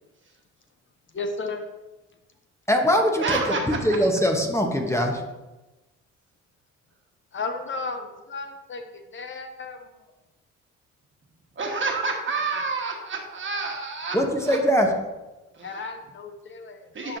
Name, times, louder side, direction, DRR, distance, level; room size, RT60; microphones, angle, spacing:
voice 1, 1.1-1.6 7.3-8.8 9.1-9.9 14.1-14.2 15.6-17.2, left 3 dB, 40° left, 6 dB, 0.7 m, -34 dB
voice 2, 2.7-5.2 14.1-14.9, equal, 10° left, 2 dB, 0.9 m, -22 dB
voice 3, 3.2-3.6 11.6-14.6 15.5-15.7 16.9-17.2, right 4 dB, 40° right, 1 dB, 1.3 m, -29 dB
10.0 x 4.4 x 2.6 m, 1.1 s
cardioid pair, 90°, 30 cm